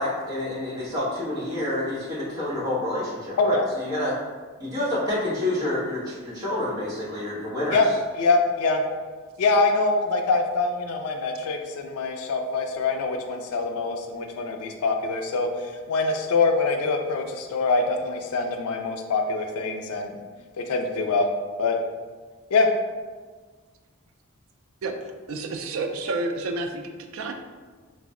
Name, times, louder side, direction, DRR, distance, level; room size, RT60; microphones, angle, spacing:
voice 1, 0.0-4.1 4.6-7.8, left 1 dB, 15° right, -10 dB, 1.0 m, -28 dB
voice 2, 8.2-8.8 9.4-20.1 20.6-21.3 21.6-21.8 22.5-22.7, left 3 dB, 90° left, 4 dB, 0.4 m, -24 dB
voice 3, 24.8-27.3, right 3 dB, 65° right, 5 dB, 0.3 m, -30 dB
3.3 x 2.0 x 3.6 m, 1.4 s
head